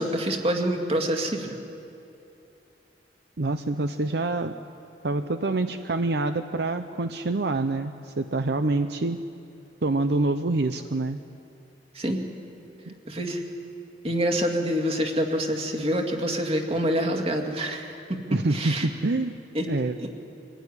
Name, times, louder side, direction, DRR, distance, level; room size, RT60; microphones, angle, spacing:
voice 1, 0.0-1.5 11.9-12.2 13.1-13.4 14.0-18.2 18.5-18.9 19.5-19.6 20.0-20.1, equal, 35° right, 3 dB, 2.3 m, -26 dB
voice 2, 3.4-4.6 5.0-9.2 9.8-11.2 12.9-13.0 18.3-19.4 19.7-20.0, right 2 dB, 65° right, 8 dB, 0.7 m, -26 dB
25.0 x 15.5 x 9.8 m, 2.7 s
head